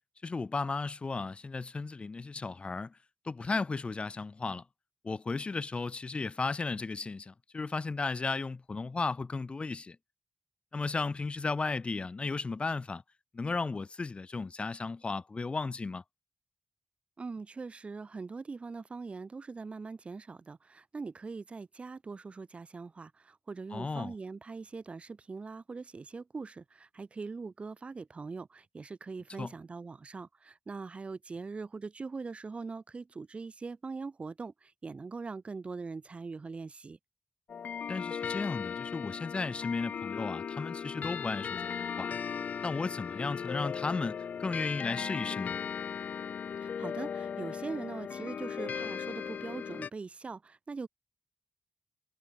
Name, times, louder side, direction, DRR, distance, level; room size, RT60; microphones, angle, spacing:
voice 1, 0.2-3.0 3.3-4.6 5.0-10.0 10.7-13.0 13.3-16.0 23.7-24.1 29.4-29.5 37.9-42.1 42.6-45.6, left 4 dB, 40° left, 3.7 m, -35 dB
voice 2, 17.2-37.0 46.8-50.9, right 4 dB, 45° right, 1.7 m, -42 dB
sound 1, 37.5-49.9, left 7 dB, 75° left, 0.7 m, -37 dB
cardioid pair, 65°, 3 cm